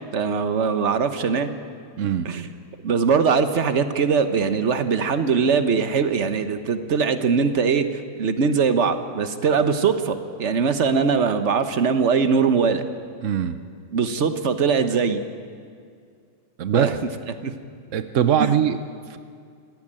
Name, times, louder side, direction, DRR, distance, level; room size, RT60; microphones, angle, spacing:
voice 1, 0.1-1.5 2.2-2.5 2.8-12.8 13.9-15.2 16.7-16.9 17.4-17.5 18.4-18.5, right 5 dB, 45° right, 9 dB, 1.1 m, -21 dB
voice 2, 2.0-2.3 13.2-13.6 16.6-16.9 17.9-18.8 19.1-19.2, right 9 dB, 75° right, 11 dB, 0.6 m, -22 dB
25.0 x 16.5 x 8.9 m, 2.2 s
omnidirectional pair, 2.3 m